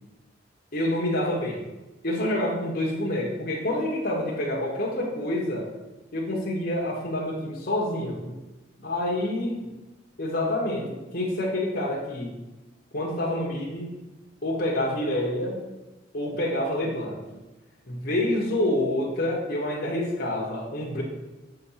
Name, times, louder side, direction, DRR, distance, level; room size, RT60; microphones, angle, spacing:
voice 1, 0.7-1.6 2.0-5.6 6.1-8.4 8.8-9.7 10.2-12.3 12.9-13.9 14.4-15.6 16.1-17.2 17.9-21.0, left 1 dB, 55° left, -3 dB, 1.2 m, -27 dB
6.9 x 3.7 x 5.6 m, 1.1 s
head